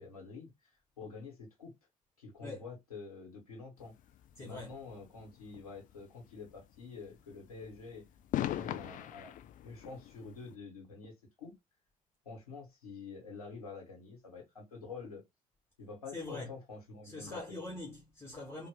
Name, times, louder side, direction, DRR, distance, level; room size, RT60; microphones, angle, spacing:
voice 1, 0.0-1.7 2.2-4.0 4.4-8.0 8.4-9.3 9.6-11.5 12.2-15.2 15.8-17.6, left 4 dB, 85° left, 1.4 m, -48 dB
sound 1, 3.8-10.5, left 12 dB, 45° left, 0.5 m, -41 dB
voice 2, 4.4-4.7 16.1-16.5 17.0-18.7, left 2 dB, 15° left, 1.4 m, -43 dB
3.8 x 2.5 x 3.8 m
figure-of-eight pair, 50°, 19 cm